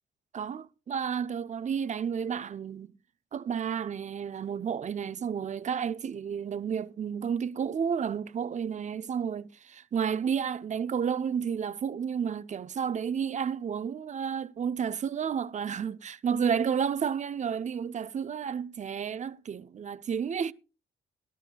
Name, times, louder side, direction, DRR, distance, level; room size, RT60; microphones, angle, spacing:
voice 1, 0.3-2.9 3.3-20.5, right 7 dB, 35° right, 0.6 m, -31 dB
20.0 x 12.5 x 2.2 m
cardioid pair, 90°, 20 cm